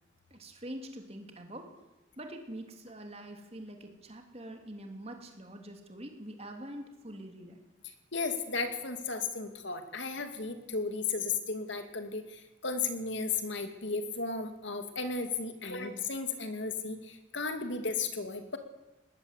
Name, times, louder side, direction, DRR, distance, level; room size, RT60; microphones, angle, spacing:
voice 1, 0.3-1.7 2.2-7.6 15.7-15.9, right 1 dB, 30° right, 4 dB, 3.1 m, -45 dB
voice 2, 7.8-18.6, left 4 dB, 65° left, 7 dB, 2.5 m, -35 dB
21.5 x 19.0 x 8.4 m, 1.1 s
head